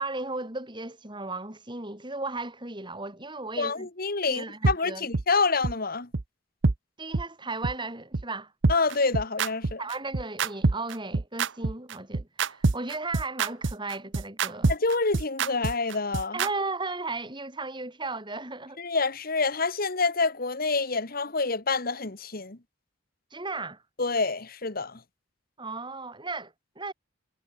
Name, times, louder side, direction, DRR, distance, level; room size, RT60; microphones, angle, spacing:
voice 1, 0.0-3.9 4.2-5.1 7.0-8.5 9.8-14.7 16.3-18.8 23.3-23.8 25.6-26.9, right 3 dB, 25° right, 5.8 m, -35 dB
voice 2, 3.6-6.1 8.7-9.8 14.7-16.4 18.8-22.6 24.0-25.0, left 4 dB, 45° left, 1.6 m, -27 dB
sound 1, 4.6-4.7 5.1-5.2 5.6-5.7 6.1-6.2 6.6-6.8 7.1-7.2 7.6-7.7 8.1-8.2 8.6-16.5, right 3 dB, 65° right, 0.9 m, -25 dB
head